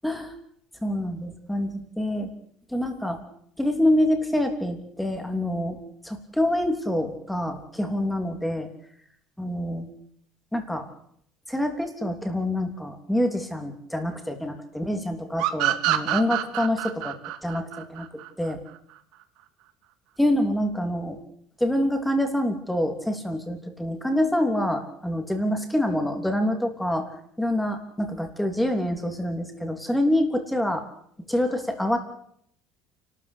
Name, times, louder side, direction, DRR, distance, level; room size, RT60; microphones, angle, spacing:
voice 1, 0.0-0.3 0.8-2.3 2.7-3.2 3.6-5.8 6.0-8.7 9.4-9.9 10.5-10.9 11.5-17.2 17.4-18.1 18.4-18.6 20.2-21.2 21.6-27.1 27.4-30.8 31.3-32.0, left 1 dB, 5° left, 5 dB, 3.1 m, -26 dB
sound 1, 15.4-18.8, right 14 dB, 70° right, 1.9 m, -26 dB
28.5 x 13.0 x 8.4 m, 0.69 s
cardioid pair, 140°, 0 cm